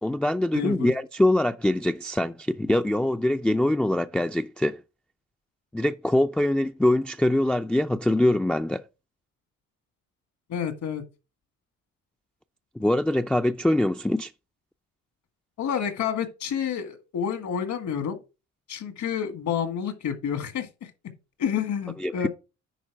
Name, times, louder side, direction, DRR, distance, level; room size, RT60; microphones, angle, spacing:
voice 1, 0.0-4.8 5.7-8.8 12.8-14.3 22.0-22.3, left 1 dB, 5° left, 0.3 m, -23 dB
voice 2, 0.5-0.9 10.5-11.0 15.6-18.2 18.7-20.7 21.4-22.3, left 8 dB, 70° left, 1.7 m, -29 dB
10.0 x 4.1 x 4.6 m
cardioid pair, 90°, 30 cm